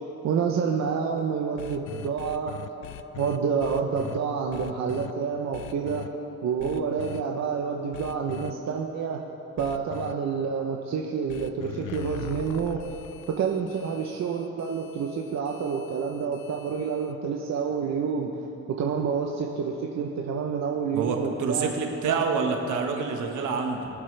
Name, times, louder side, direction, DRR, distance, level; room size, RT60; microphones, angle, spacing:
voice 1, 0.2-2.6 3.1-6.1 6.4-9.2 9.6-12.9 13.3-18.3 18.7-21.7 22.1-22.2, right 6 dB, 60° right, 0 dB, 0.9 m, -28 dB
sound 1, 1.6-4.2 4.5-5.1 5.5-6.1 6.6-7.2 7.9-8.5 9.6-10.1 11.3-17.1, left 13 dB, 90° left, 0.5 m, -41 dB
voice 2, 20.9-23.9, right 5 dB, 80° right, 2 dB, 1.5 m, -27 dB
22.0 x 7.4 x 3.4 m, 3.0 s
cardioid pair, 90°, 30 cm